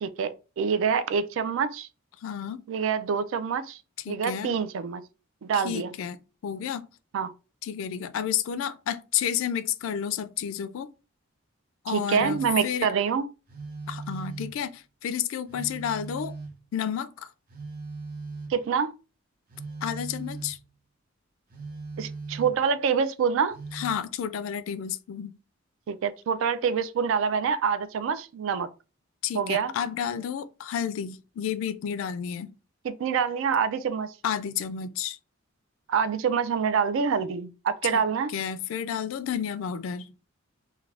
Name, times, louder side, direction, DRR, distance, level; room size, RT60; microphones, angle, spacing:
voice 1, 0.0-1.9 2.7-3.8 4.1-5.0 5.4-6.0 7.1-7.3 11.9-13.3 18.5-18.9 22.0-23.6 25.9-28.7 29.3-29.7 32.8-34.1 35.9-38.3, right 6 dB, 70° right, 0.3 m, -26 dB
voice 2, 2.2-2.6 4.1-4.6 5.5-6.8 7.6-10.9 11.8-12.9 13.9-16.4 16.7-17.3 19.8-20.6 23.7-25.3 29.2-32.5 34.2-35.2 37.9-38.0 38.3-40.1, left 8 dB, 70° left, 0.3 m, -31 dB
Telephone, 12.2-12.7 13.5-14.7 15.5-16.7 17.5-18.7 19.5-20.6 21.5-22.7 23.5-24.1, right 3 dB, 45° right, 0.7 m, -39 dB
2.4 x 2.2 x 3.2 m
head